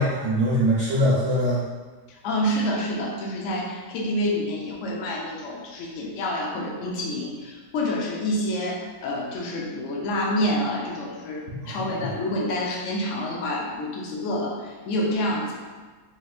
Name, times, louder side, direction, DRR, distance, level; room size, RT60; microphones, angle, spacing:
voice 1, 0.0-1.7 11.6-12.1, equal, 60° right, -8 dB, 0.8 m, -23 dB
voice 2, 2.2-15.5, left 1 dB, 65° left, -2 dB, 0.9 m, -28 dB
3.1 x 3.0 x 2.3 m, 1.4 s
omnidirectional pair, 1.6 m